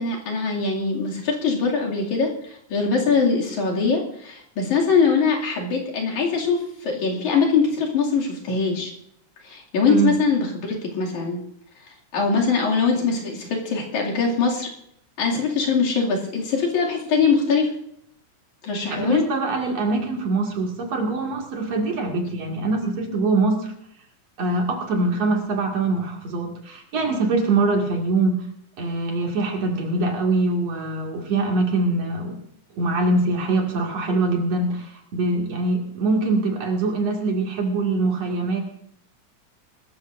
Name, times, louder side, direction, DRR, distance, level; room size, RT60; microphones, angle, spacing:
voice 1, 0.0-8.9 9.4-11.4 12.1-14.7 15.2-17.7 18.6-19.2, left 5 dB, 75° left, -2 dB, 4.0 m, -22 dB
voice 2, 18.8-23.7 24.4-28.4 28.8-32.4 32.8-38.6, right 3 dB, 60° right, 1 dB, 3.3 m, -23 dB
22.0 x 14.0 x 2.6 m, 0.71 s
omnidirectional pair, 3.4 m